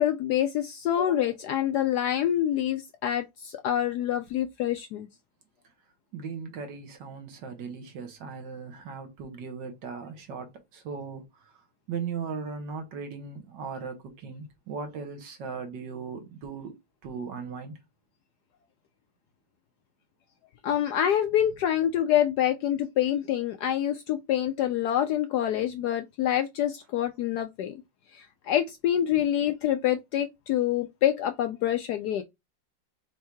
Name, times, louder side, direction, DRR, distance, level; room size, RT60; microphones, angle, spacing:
voice 1, 0.0-5.1 20.6-27.8 28.1-32.2, left 11 dB, 70° left, 1.0 m, -26 dB
voice 2, 6.1-17.8, right 5 dB, 75° right, 1.6 m, -38 dB
4.6 x 2.6 x 4.4 m
omnidirectional pair, 2.0 m